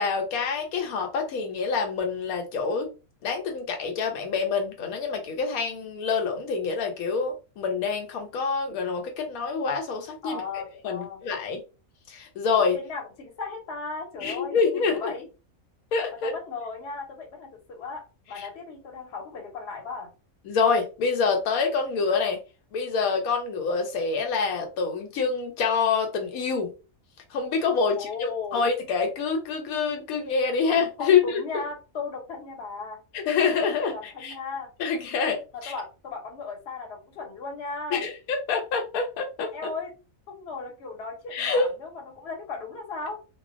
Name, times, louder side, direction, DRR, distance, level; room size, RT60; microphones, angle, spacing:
voice 1, 0.0-2.9 3.2-10.4 10.8-11.6 12.1-12.8 14.2-15.1 15.9-16.3 18.4-18.5 20.5-22.4 22.7-26.7 27.3-31.4 33.1-34.3 34.8-35.7 37.9-39.7 41.3-41.7, left 5 dB, 85° left, 1.1 m, -26 dB
voice 2, 10.2-11.2 12.7-15.3 16.2-20.1 27.9-28.6 31.0-33.0 33.9-34.7 35.5-38.0 39.5-39.9 40.3-43.2, left 4 dB, 55° left, 1.0 m, -36 dB
2.4 x 2.1 x 2.4 m
omnidirectional pair, 1.5 m